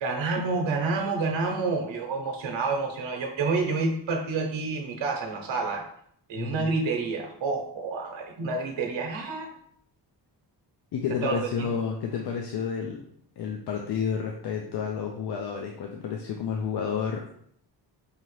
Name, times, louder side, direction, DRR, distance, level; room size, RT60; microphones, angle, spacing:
voice 1, 0.0-5.9 6.3-9.5 11.2-11.7, right 4 dB, 90° right, 2 dB, 0.9 m, -28 dB
voice 2, 6.4-6.8 10.9-13.1 13.4-17.3, left 6 dB, 60° left, 2 dB, 0.6 m, -30 dB
5.5 x 2.8 x 3.1 m, 0.66 s
wide cardioid pair, 165°, 44 cm